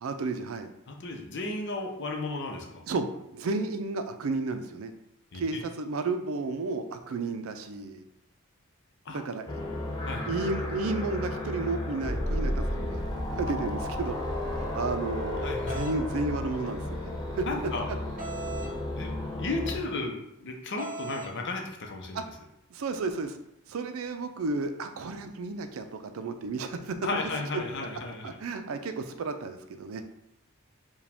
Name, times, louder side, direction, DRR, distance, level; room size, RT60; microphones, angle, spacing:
voice 1, 0.0-0.7 2.9-3.1 3.3-4.9 5.3-8.0 9.1-9.5 10.3-13.0 13.3-18.0 22.1-22.2 22.7-23.4 23.7-27.0 28.2-30.0, right 3 dB, 75° right, 8 dB, 0.4 m, -32 dB
voice 2, 0.9-2.9 5.3-5.6 9.1-9.2 10.0-10.3 15.4-15.8 17.5-17.9 19.0-22.2 27.0-28.3, left 3 dB, 60° left, 2 dB, 0.7 m, -34 dB
sound 1, 9.5-19.8, left 1 dB, 20° left, 0.6 m, -33 dB
sound 2, 15.7-16.0 18.2-18.7 20.8-21.3, right 2 dB, 40° right, 0.7 m, -38 dB
4.8 x 2.3 x 3.4 m, 0.81 s
head